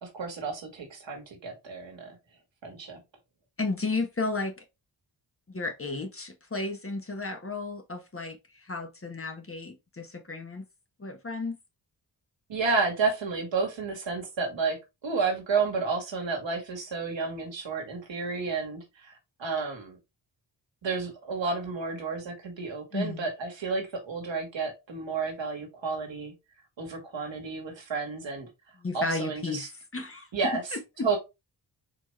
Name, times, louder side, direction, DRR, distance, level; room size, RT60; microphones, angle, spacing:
voice 1, 0.0-2.2 2.6-3.0 12.5-14.8 15.0-19.1 19.4-20.0 20.8-26.3 26.8-28.5 28.9-29.7 30.3-30.6 31.0-31.2, right 4 dB, 70° right, 1.7 m, -31 dB
voice 2, 3.6-4.6 5.5-10.6 11.0-11.6 22.9-23.3 28.8-30.3 30.7-31.2, left 3 dB, 30° left, 1.2 m, -33 dB
4.4 x 2.9 x 3.2 m
supercardioid pair, 40°, 46 cm